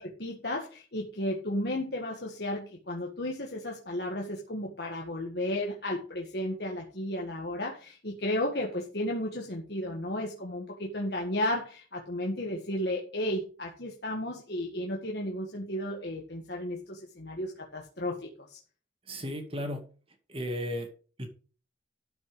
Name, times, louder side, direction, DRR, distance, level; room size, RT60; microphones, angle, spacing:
voice 1, 0.0-18.6, left 1 dB, 55° left, 1.8 m, -33 dB
voice 2, 19.1-19.8 20.3-20.9 21.2-21.3, equal, 30° right, 2.1 m, -34 dB
13.0 x 5.9 x 5.0 m
head